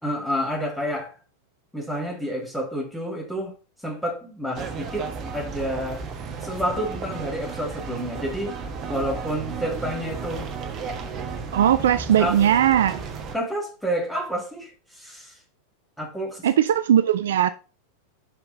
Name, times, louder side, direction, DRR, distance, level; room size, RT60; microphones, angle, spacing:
voice 1, 0.0-1.1 1.7-3.5 3.8-5.1 5.3-6.0 6.4-8.6 8.9-10.5 12.0-12.4 13.3-15.4 16.0-16.5, equal, ahead, 2.4 m, -29 dB
sound 1, 4.6-13.4, right 5 dB, 30° right, 1.2 m, -34 dB
voice 2, 11.5-13.1 16.4-17.5, right 10 dB, 60° right, 0.4 m, -19 dB
5.9 x 5.7 x 4.7 m
figure-of-eight pair, 90°, 0 cm